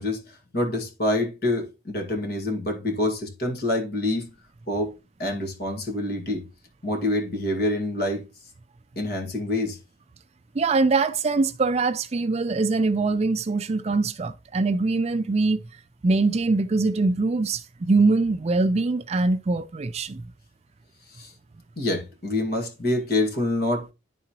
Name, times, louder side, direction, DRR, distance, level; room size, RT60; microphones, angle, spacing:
voice 1, 0.0-4.3 4.7-4.9 5.2-6.5 6.8-8.2 9.0-9.8 21.1-21.3 21.8-23.9, left 1 dB, 55° left, 1.9 m, -26 dB
voice 2, 10.5-15.6 16.0-20.2, right 3 dB, 35° right, 0.4 m, -23 dB
11.0 x 3.8 x 2.9 m
head